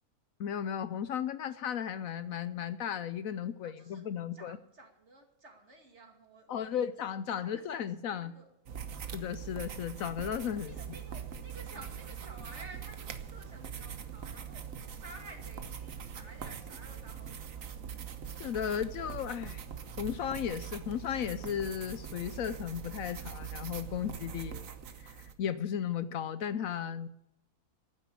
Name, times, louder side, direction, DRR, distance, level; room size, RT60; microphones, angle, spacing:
voice 1, 0.4-4.6 6.5-8.3 9.1-10.7 18.4-19.6 20.0-24.7 25.0-27.1, left 9 dB, 70° left, 13 dB, 1.0 m, -35 dB
voice 2, 3.6-4.0 4.3-6.8 7.4-8.5 10.6-18.1, right 2 dB, 45° right, 2 dB, 2.7 m, -53 dB
sound 1, 8.7-25.3, right 8 dB, 65° right, 1.4 m, -43 dB
12.5 x 9.6 x 8.4 m, 0.87 s
omnidirectional pair, 1.6 m